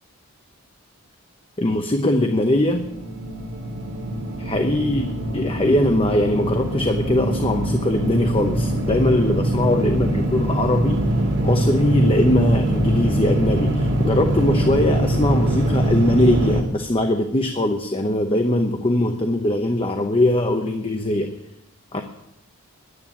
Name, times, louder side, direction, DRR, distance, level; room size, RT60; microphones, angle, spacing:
voice 1, 1.6-2.9 4.4-5.1 5.3-11.1 11.4-21.4 21.9-22.0, left 1 dB, 25° left, 5 dB, 0.8 m, -21 dB
sound 1, 2.6-16.6, right 1 dB, 55° right, 2.3 m, -22 dB
10.5 x 9.6 x 8.5 m, 0.83 s
head